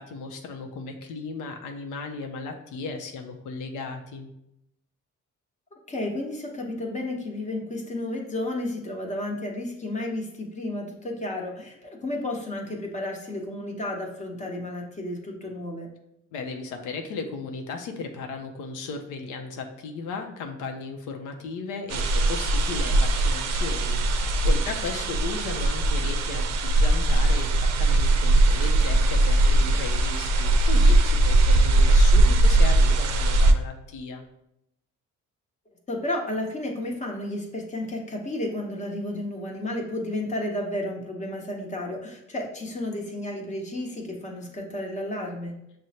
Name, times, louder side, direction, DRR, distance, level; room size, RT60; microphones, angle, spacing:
voice 1, 0.0-4.3 16.3-34.2, left 4 dB, 90° left, 4 dB, 0.6 m, -36 dB
voice 2, 5.9-15.9 35.9-45.6, left 1 dB, 25° left, 0 dB, 0.9 m, -32 dB
sound 1, 21.9-33.5, right 2 dB, 60° right, 0.5 m, -20 dB
6.2 x 2.1 x 2.8 m, 0.81 s
cardioid pair, 90°, 30 cm